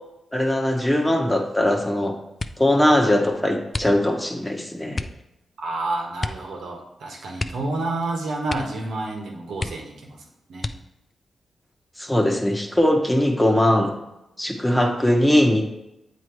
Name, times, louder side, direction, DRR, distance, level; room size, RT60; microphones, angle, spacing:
voice 1, 0.3-2.1 2.6-5.0 12.0-13.9 14.4-15.6, left 1 dB, 10° left, 2 dB, 1.1 m, -20 dB
sound 1, 2.3-2.8 3.7-4.3 4.9-5.2 6.2-6.5 6.8-6.9 7.3-8.1 8.4-8.9 9.2-9.3 9.6-10.1 10.6-11.1 11.8-12.4 12.8-13.2, left 3 dB, 40° left, 0.4 m, -32 dB
voice 2, 5.6-10.7, right 2 dB, 80° right, 0 dB, 1.2 m, -29 dB
7.9 x 3.0 x 4.6 m, 0.91 s
supercardioid pair, 40°, 0 cm